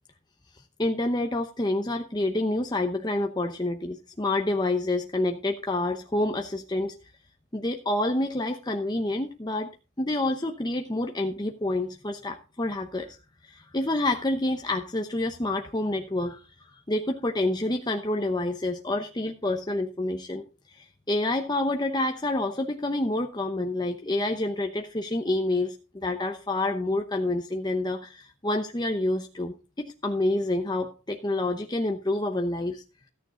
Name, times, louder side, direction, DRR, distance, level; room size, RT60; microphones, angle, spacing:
voice 1, 0.8-6.9 7.5-9.7 10.0-13.2 13.4-32.8, left 2 dB, 20° left, 4 dB, 0.8 m, -28 dB
14.0 x 9.2 x 3.8 m, 0.32 s
head